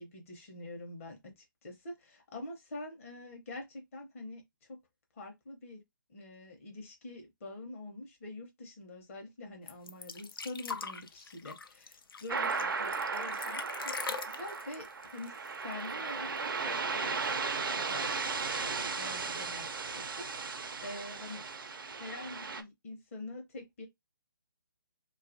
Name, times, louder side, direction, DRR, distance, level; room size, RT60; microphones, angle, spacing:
voice 1, 0.0-4.4 4.7-4.8 5.1-5.8 6.1-18.1 18.6-21.4 21.9-23.9, left 2 dB, 40° left, 0.7 m, -46 dB
sound 1, 9.7-16.1 16.4-16.5 16.8-17.5 18.3-18.4, left 5 dB, 85° left, 0.4 m, -42 dB
sound 2, 12.3-22.6, right 4 dB, 75° right, 0.5 m, -36 dB
2.6 x 2.3 x 2.5 m
figure-of-eight pair, 150°, 12 cm